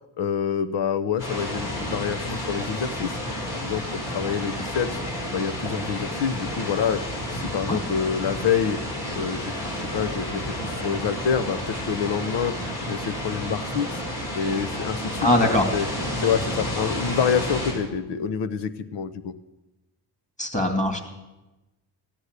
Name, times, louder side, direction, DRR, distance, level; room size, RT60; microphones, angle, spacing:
voice 1, 0.2-3.2 3.5-5.0 5.3-7.0 7.3-8.8 9.1-14.0 14.3-15.3 15.7-15.9 16.2-19.3, left 7 dB, 80° left, 13 dB, 1.0 m, -27 dB
sound 1, 1.2-17.7, equal, 60° left, 6.3 m, -31 dB
voice 2, 15.2-15.7 20.4-21.1, left 1 dB, 15° left, 5 dB, 2.5 m, -21 dB
15.5 x 9.9 x 8.2 m, 1.0 s
cardioid pair, 115°, 41 cm